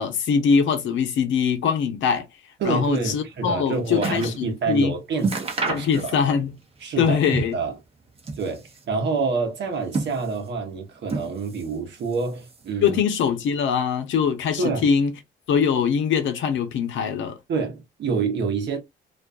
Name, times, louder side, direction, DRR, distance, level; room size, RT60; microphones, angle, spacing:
voice 1, 0.0-2.2 2.6-4.9 5.7-6.5 7.0-7.6 12.8-15.1 15.5-17.4, left 6 dB, 75° left, 0.7 m, -22 dB
voice 2, 2.6-6.2 6.8-7.2 7.5-7.8 8.4-13.0 14.6-14.8 17.5-18.8, right 4 dB, 65° right, 0.9 m, -27 dB
sound 1, 3.3-4.4 4.8-4.9 5.2-6.5 6.8-7.7 8.1-8.9 9.6-10.6 11.0-11.8 12.0-12.8 13.5-13.6, right 3 dB, 30° right, 0.8 m, -31 dB
2.5 x 2.2 x 2.5 m
cardioid pair, 90°, 20 cm